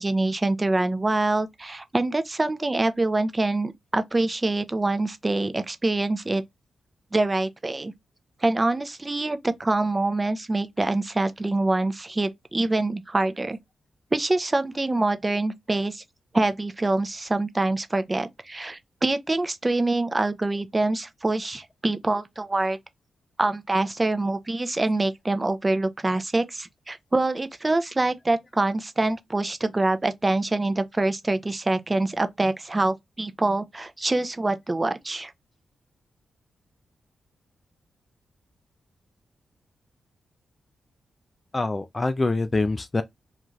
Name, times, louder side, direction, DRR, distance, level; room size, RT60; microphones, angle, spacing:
voice 1, 0.0-6.4 7.1-7.9 8.4-13.6 14.1-16.0 16.3-22.8 23.4-35.3, right 2 dB, 30° right, 0.5 m, -25 dB
voice 2, 41.5-43.0, left 2 dB, 35° left, 0.3 m, -25 dB
2.5 x 2.3 x 3.0 m
supercardioid pair, 40°, 0 cm